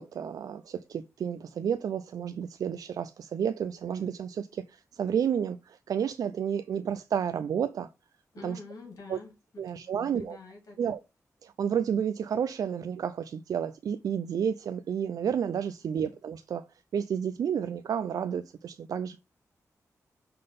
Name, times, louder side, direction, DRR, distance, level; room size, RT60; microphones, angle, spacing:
voice 1, 0.0-7.9 8.4-8.6 9.1-9.2 9.6-10.4 10.8-11.0 11.4-16.6 16.9-19.2, right 8 dB, 80° right, 0.4 m, -31 dB
voice 2, 8.3-11.0 15.8-16.2, left 3 dB, 75° left, 2.8 m, -48 dB
5.6 x 3.8 x 5.2 m
cardioid pair, 80°, 6 cm